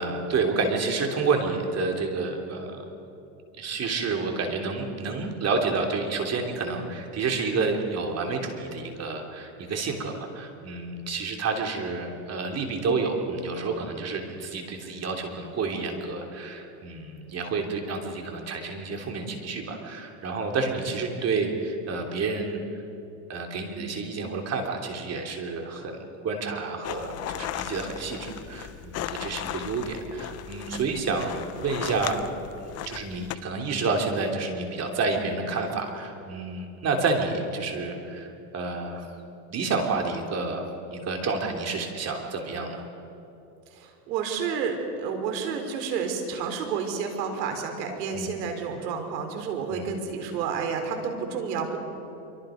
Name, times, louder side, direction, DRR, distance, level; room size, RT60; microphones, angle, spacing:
voice 1, 0.0-2.7 3.6-22.6 23.3-26.0 26.2-32.2 32.9-39.1 39.5-40.6 40.9-42.8 48.1-48.3 49.7-49.9, right 4 dB, 30° right, 3 dB, 3.3 m, -29 dB
sound 1, 26.8-33.4, left 12 dB, 30° left, 0.7 m, -36 dB
voice 2, 43.8-51.8, right 6 dB, 80° right, 4 dB, 4.3 m, -30 dB
26.0 x 24.5 x 5.2 m, 2.8 s
supercardioid pair, 130°, 49 cm